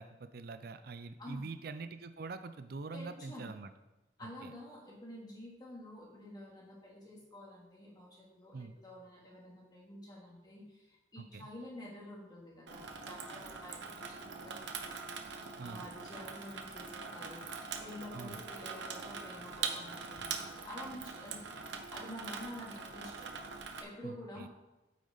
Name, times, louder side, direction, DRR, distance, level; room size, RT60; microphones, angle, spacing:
voice 1, 0.0-3.7 4.4-4.5 8.5-8.8 11.2-11.5 15.6-15.8 18.1-18.4 24.0-24.5, right 3 dB, 55° right, 10 dB, 0.5 m, -44 dB
voice 2, 2.9-3.5 4.2-17.4 17.8-21.5 21.9-24.5, left 1 dB, 20° left, -4 dB, 2.8 m, -49 dB
Water tap faucet / Sink (filling or washing), 12.7-23.8, right 5 dB, 80° right, 1.0 m, -43 dB
8.9 x 8.5 x 4.0 m, 1.1 s
head